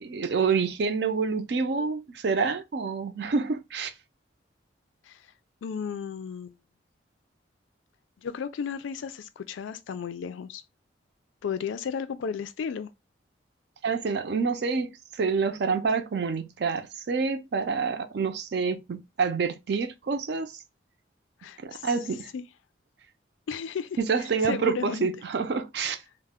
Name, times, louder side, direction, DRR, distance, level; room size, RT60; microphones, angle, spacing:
voice 1, 0.0-3.9 13.8-20.5 21.6-22.3 24.0-26.0, right 5 dB, 60° right, 0.4 m, -27 dB
voice 2, 5.6-6.5 8.2-10.6 11.4-12.9 21.4-21.9 22.3-22.4 23.5-24.0 24.4-25.1, left 6 dB, 85° left, 0.3 m, -34 dB
2.2 x 2.0 x 3.4 m
head